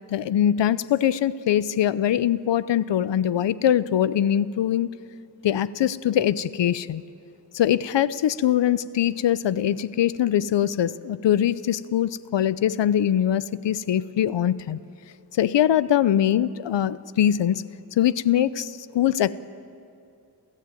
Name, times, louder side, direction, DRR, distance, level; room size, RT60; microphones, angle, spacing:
voice 1, 0.1-4.9 5.4-7.0 7.5-14.8 15.4-17.6 18.0-19.3, left 10 dB, 90° left, 17 dB, 0.7 m, -22 dB
28.5 x 15.0 x 9.1 m, 2.5 s
wide cardioid pair, 100°, 42 cm